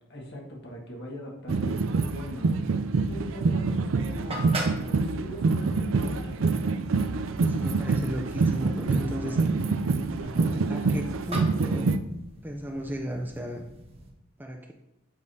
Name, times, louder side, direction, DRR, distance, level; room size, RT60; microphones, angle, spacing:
voice 1, 0.1-2.5 3.1-4.6 4.8-6.4 7.4-7.7 8.8-9.6 10.2-10.7, left 1 dB, 55° left, -1 dB, 1.7 m, -41 dB
sound 1, 1.5-12.0, right 4 dB, 65° right, 0.4 m, -26 dB
sound 2, 3.3-14.1, right 1 dB, 30° right, 1.0 m, -42 dB
voice 2, 7.3-9.4 10.7-11.9 12.4-13.7 14.4-14.7, equal, 10° right, 2 dB, 0.5 m, -35 dB
8.2 x 5.2 x 2.8 m, 0.91 s
head